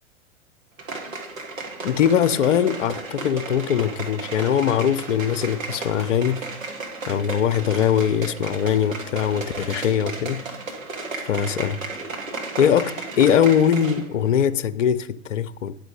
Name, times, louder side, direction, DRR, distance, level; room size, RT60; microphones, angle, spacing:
sound 1, 0.8-14.1 14.4-14.5, right 3 dB, 85° right, 2.0 m, -34 dB
voice 1, 1.8-6.4 7.1-10.4 11.3-11.8 12.6-15.7, left 8 dB, 70° left, 0.6 m, -21 dB
10.5 x 6.0 x 5.2 m
figure-of-eight pair, 95°, 39 cm